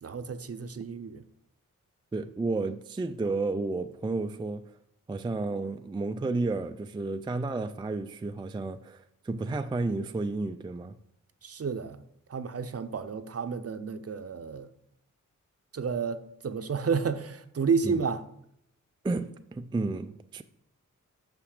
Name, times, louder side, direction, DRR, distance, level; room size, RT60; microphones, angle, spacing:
voice 1, 0.0-1.2 11.4-12.0 12.3-14.7 15.7-18.2, right 5 dB, 50° right, 0.6 m, -31 dB
voice 2, 2.1-4.6 5.1-11.0 17.8-18.1 19.0-20.4, right 3 dB, 15° right, 0.3 m, -32 dB
5.9 x 5.8 x 6.5 m
wide cardioid pair, 90°, 32 cm